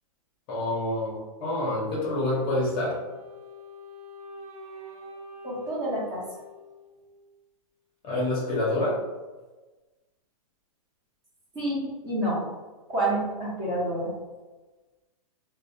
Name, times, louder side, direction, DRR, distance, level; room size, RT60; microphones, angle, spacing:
voice 1, 0.5-3.0 8.0-9.0, left 1 dB, 25° left, -5 dB, 0.7 m, -27 dB
Wind instrument woodwind instrument, 2.3-7.4, left 2 dB, 75° right, 0.6 m, -45 dB
voice 2, 5.4-6.2 11.5-12.4 12.9-14.1, right 1 dB, 20° right, -6 dB, 0.8 m, -28 dB
2.6 x 2.1 x 2.6 m, 1.2 s
hypercardioid pair, 150°, 19 cm